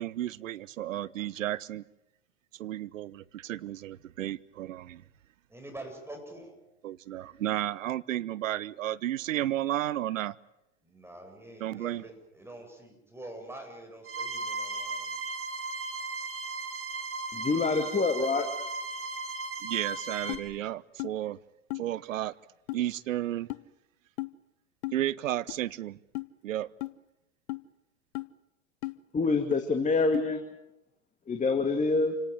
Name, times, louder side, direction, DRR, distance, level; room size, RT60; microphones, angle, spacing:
voice 1, 0.0-1.8 2.5-5.0 6.8-10.4 11.6-12.0 19.6-21.4 21.7-22.3 22.7-23.5 24.9-26.0 26.4-26.7, right 13 dB, 80° right, 0.9 m, -33 dB
voice 2, 5.5-6.5 10.8-15.1, right 1 dB, 5° right, 7.7 m, -45 dB
sound 1, 14.0-20.3, right 3 dB, 35° right, 4.1 m, -36 dB
voice 3, 17.3-18.5 29.1-30.4 31.3-32.1, left 3 dB, 20° left, 2.4 m, -26 dB
sound 2, 20.3-20.4 21.0-21.1 21.7-21.9 22.7-22.8 23.5-23.6 24.2-24.3 24.8-25.0 25.5-25.6 26.1-26.3 26.8-26.9 27.5-27.6 28.1-28.3 28.8-29.0 29.5-29.6 30.1-30.3, left 22 dB, 55° left, 1.0 m, -35 dB
28.0 x 18.0 x 9.6 m
hypercardioid pair, 90°, 39 cm